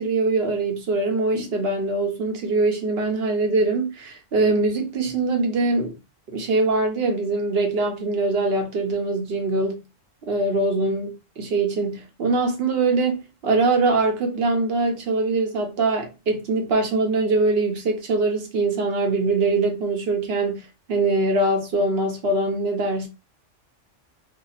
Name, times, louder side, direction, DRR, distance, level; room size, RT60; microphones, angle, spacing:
voice 1, 0.0-6.0 6.3-9.8 10.2-23.1, right 3 dB, 55° right, 0.9 m, -23 dB
2.8 x 2.1 x 4.0 m
omnidirectional pair, 1.3 m